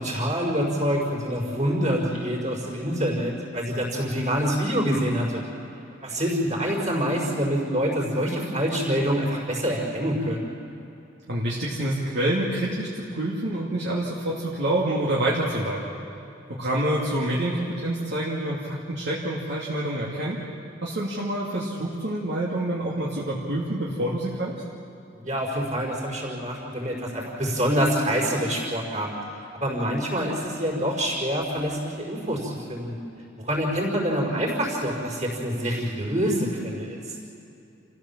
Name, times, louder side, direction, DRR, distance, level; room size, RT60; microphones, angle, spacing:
voice 1, 0.0-5.4 6.0-10.5 25.1-29.1 29.5-33.0 33.4-37.1, equal, 40° right, -1 dB, 5.3 m, -26 dB
voice 2, 11.3-15.8 16.5-20.4 20.8-24.5, right 1 dB, 60° right, -6 dB, 2.6 m, -27 dB
28.5 x 15.5 x 7.5 m, 2.8 s
head